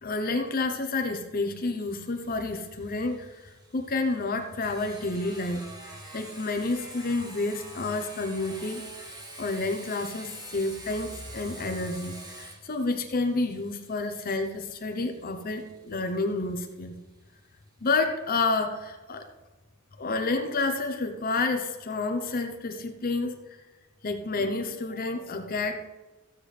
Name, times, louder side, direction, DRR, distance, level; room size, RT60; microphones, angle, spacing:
voice 1, 0.0-9.1 9.4-16.9 17.8-19.3 20.0-23.4 24.0-25.8, left 3 dB, 45° left, 6 dB, 0.8 m, -30 dB
Sawing, 1.5-16.9, right 1 dB, 20° right, 1.5 m, -47 dB
15.0 x 8.2 x 3.3 m, 1.2 s
head